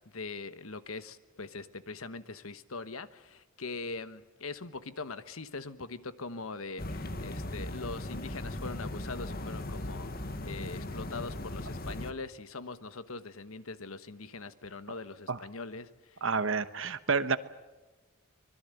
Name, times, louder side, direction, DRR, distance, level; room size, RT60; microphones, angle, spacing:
voice 1, 0.1-16.2, left 3 dB, 80° left, 13 dB, 1.2 m, -42 dB
sound 1, 6.8-12.1, left 1 dB, 45° left, 1.5 m, -38 dB
voice 2, 16.2-17.4, right 5 dB, 65° right, 12 dB, 1.2 m, -29 dB
25.5 x 22.0 x 7.9 m, 1.1 s
head